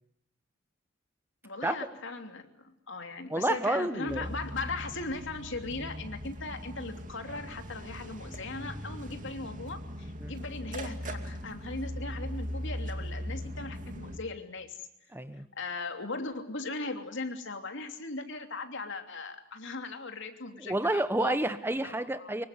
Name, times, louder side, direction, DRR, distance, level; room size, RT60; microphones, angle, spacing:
voice 1, 1.4-14.8 15.6-21.4 21.8-22.3, left 3 dB, 65° left, 6 dB, 3.0 m, -38 dB
voice 2, 3.3-4.3 10.2-10.3 15.1-15.5 20.6-22.5, right 1 dB, 10° right, 12 dB, 1.0 m, -29 dB
sound 1, 4.1-14.2, equal, 40° right, 2.6 m, -39 dB
25.5 x 23.0 x 9.7 m, 0.75 s
head